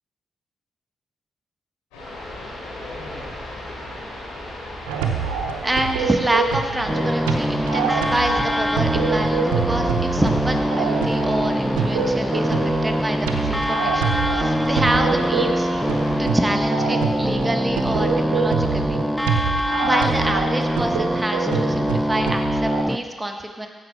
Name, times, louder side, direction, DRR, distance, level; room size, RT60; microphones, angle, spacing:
sound 1, 1.9-16.2, left 1 dB, 90° left, 3.4 m, -36 dB
sound 2, 4.9-22.8, right 6 dB, 90° right, 0.6 m, -26 dB
voice 1, 5.6-15.7 16.2-19.0 19.8-23.7, right 1 dB, 20° right, 4 dB, 1.4 m, -27 dB
sound 3, 6.9-23.0, equal, ahead, 0.6 m, -23 dB
15.5 x 5.6 x 4.7 m, 1.5 s
hypercardioid pair, 40°, 0 cm